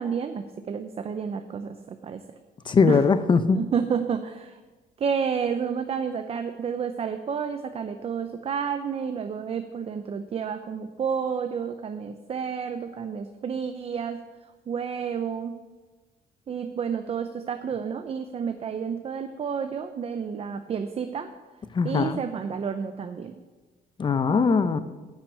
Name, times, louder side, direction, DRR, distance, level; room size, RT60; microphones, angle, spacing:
voice 1, 0.0-2.2 2.9-3.0 3.5-4.6 5.0-14.2 14.7-15.6 16.5-21.3 21.8-23.3, right 6 dB, 35° right, 8 dB, 0.6 m, -30 dB
voice 2, 2.7-3.6 21.7-22.2 24.0-24.8, left 5 dB, 30° left, 12 dB, 0.6 m, -21 dB
10.0 x 6.0 x 8.3 m, 1.3 s
cardioid pair, 130°, 17 cm